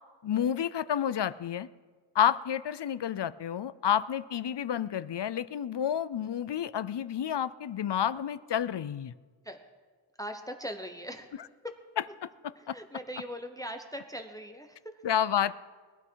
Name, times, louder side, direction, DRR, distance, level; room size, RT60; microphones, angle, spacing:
voice 1, 0.2-1.7 2.1-9.1 12.7-12.8 15.0-15.5, left 9 dB, 65° left, 17 dB, 0.6 m, -30 dB
voice 2, 10.2-11.3 12.6-15.0, equal, 10° left, 6 dB, 1.0 m, -40 dB
20.5 x 12.0 x 4.7 m, 1.4 s
wide cardioid pair, 75°, 44 cm